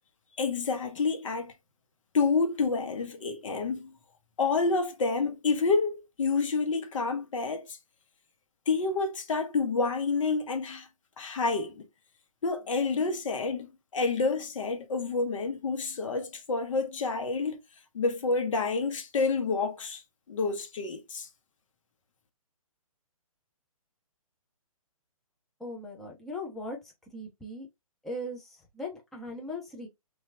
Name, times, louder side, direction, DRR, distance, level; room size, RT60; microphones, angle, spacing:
voice 1, 0.4-1.5 2.1-3.9 4.4-7.8 8.7-10.9 11.2-11.9 12.4-17.6 17.9-20.0 20.3-21.3, left 4 dB, 60° left, 0.8 m, -28 dB
voice 2, 25.6-26.8 27.1-27.7 28.0-29.9, left 1 dB, ahead, 0.5 m, -39 dB
2.9 x 2.3 x 2.4 m
figure-of-eight pair, 135°, 19 cm